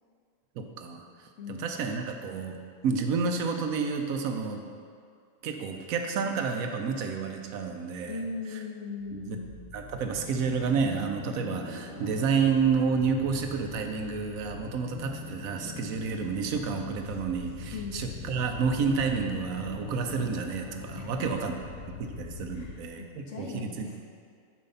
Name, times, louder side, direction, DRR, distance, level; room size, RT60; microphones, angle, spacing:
voice 1, 0.6-1.0 1.5-2.6 2.8-4.6 5.4-8.2 9.1-9.4 9.7-21.5 22.0-23.9, right 5 dB, 85° right, 4 dB, 1.1 m, -30 dB
voice 2, 1.4-1.7 8.0-9.6 17.7-18.0 20.9-21.5 22.5-24.0, left 4 dB, 65° left, 0 dB, 1.0 m, -39 dB
sound 1, 9.0-22.7, left 5 dB, 90° left, 1.7 m, -42 dB
7.5 x 4.7 x 5.5 m, 2.1 s
omnidirectional pair, 1.4 m